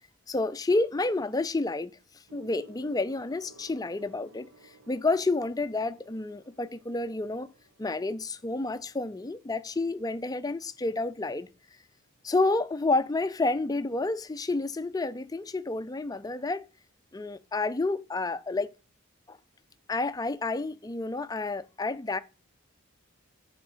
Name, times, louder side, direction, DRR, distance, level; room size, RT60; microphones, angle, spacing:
voice 1, 0.3-1.9 2.3-7.5 7.8-11.5 12.2-16.6 17.1-18.7 19.3-19.4 19.9-22.2, left 3 dB, 15° left, 0.4 m, -30 dB
Gong, 2.3-12.0 13.0-13.3, right 2 dB, 80° right, 1.4 m, -57 dB
7.0 x 5.1 x 6.7 m
head